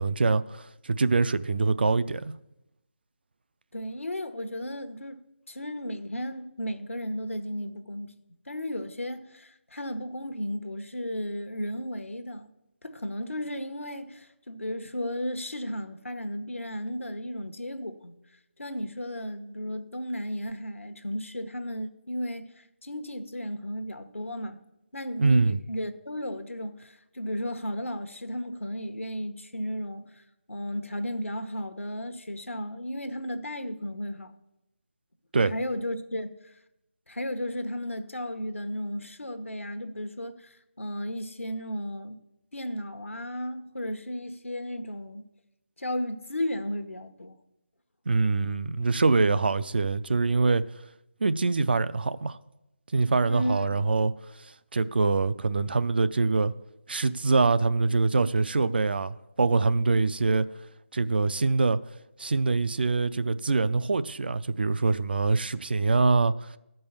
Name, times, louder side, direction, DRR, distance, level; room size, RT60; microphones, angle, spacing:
voice 1, 0.0-2.3 25.2-25.6 35.3-35.5 48.1-50.6 51.2-52.4 52.9-54.1 54.7-56.5 56.9-60.5 60.9-61.8 62.2-66.5, right 3 dB, 50° right, 0.5 m, -24 dB
voice 2, 3.7-8.1 8.5-12.5 12.8-18.2 18.6-24.6 24.9-34.3 35.5-36.5 37.1-42.2 42.5-45.2 45.8-47.4 53.3-53.7, equal, 85° left, 1.1 m, -34 dB
12.5 x 5.5 x 7.1 m
figure-of-eight pair, 160°, 7 cm